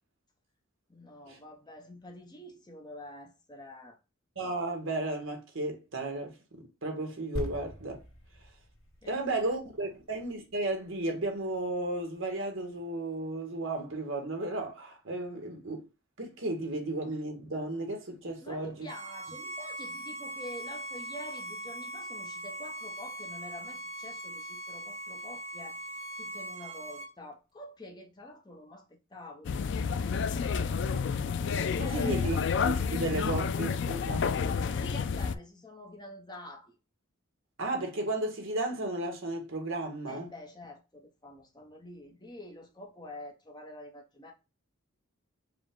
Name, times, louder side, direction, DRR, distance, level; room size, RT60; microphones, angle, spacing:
voice 1, 0.9-4.0 9.0-9.2 18.4-25.8 26.2-29.5 30.0-32.4 34.6-36.8 40.1-44.3, left 1 dB, 20° left, 0.7 m, -47 dB
voice 2, 4.4-8.0 9.1-15.8 16.2-18.9 31.8-32.4 32.7-34.3 37.6-40.3, right 2 dB, 65° right, 1.2 m, -34 dB
sound 1, 7.3-10.9 11.6-11.7, equal, 80° left, 1.6 m, -42 dB
Bowed string instrument, 18.9-27.1, right 1 dB, 30° right, 0.5 m, -41 dB
sound 2, 29.4-35.3, left 6 dB, 55° left, 0.3 m, -30 dB
4.9 x 2.2 x 3.6 m
head